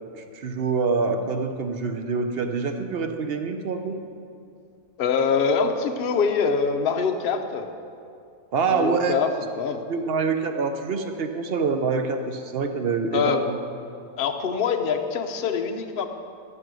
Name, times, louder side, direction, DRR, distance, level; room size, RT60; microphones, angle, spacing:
voice 1, 0.3-4.0 8.5-9.2 9.9-13.5, right 4 dB, 55° right, 6 dB, 0.7 m, -25 dB
voice 2, 5.0-7.7 8.7-9.8 13.1-13.4 14.2-16.1, left 5 dB, 50° left, 5 dB, 0.7 m, -24 dB
14.0 x 6.1 x 6.2 m, 2.5 s
omnidirectional pair, 1.7 m